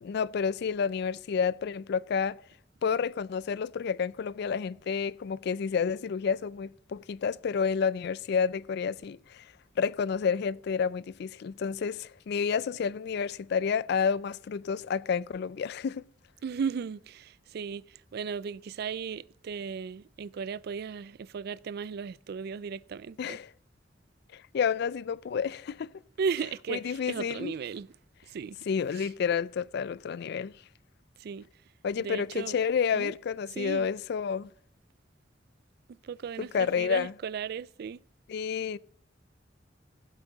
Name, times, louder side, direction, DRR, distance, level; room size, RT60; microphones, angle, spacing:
voice 1, 0.0-2.4 2.8-9.5 9.8-16.0 23.2-23.5 24.3-25.9 26.7-27.5 28.7-30.5 31.8-34.5 36.5-37.1 38.3-38.8, left 6 dB, 60° left, 0.3 m, -30 dB
voice 2, 16.4-23.4 26.2-27.9 28.3-28.6 28.9-29.1 31.2-31.5 32.0-32.6 32.9-33.1 33.6-33.9 36.0-38.0, right 6 dB, 55° right, 0.3 m, -36 dB
15.5 x 8.3 x 3.9 m
head